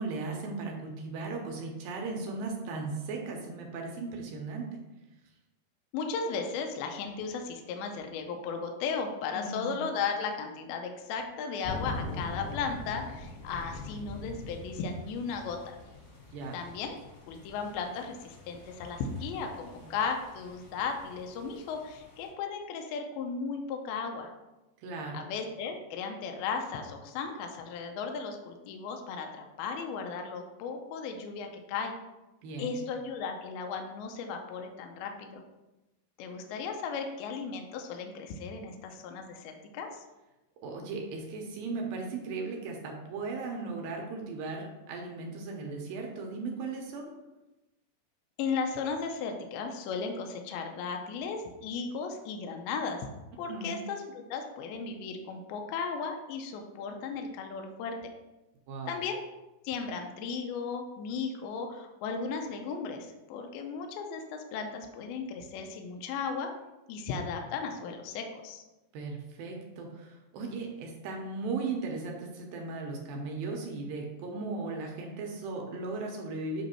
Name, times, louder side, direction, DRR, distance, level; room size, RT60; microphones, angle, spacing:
voice 1, 0.0-4.8 9.3-9.8 16.3-16.6 19.8-19.9 24.8-25.3 32.4-32.8 40.6-47.1 53.5-53.8 58.7-58.9 68.9-76.6, right 3 dB, 75° right, 1 dB, 2.2 m, -37 dB
voice 2, 5.9-15.8 16.5-16.9 17.3-24.3 25.1-31.9 32.6-35.4 36.2-40.0 48.4-53.1 53.4-58.0 58.9-59.2 59.6-66.5 66.9-68.6, left 5 dB, 85° left, 4 dB, 2.2 m, -36 dB
sound 1, 11.6-22.3, left 3 dB, 60° left, 3.9 m, -44 dB
7.9 x 3.0 x 4.3 m, 1.0 s
omnidirectional pair, 4.8 m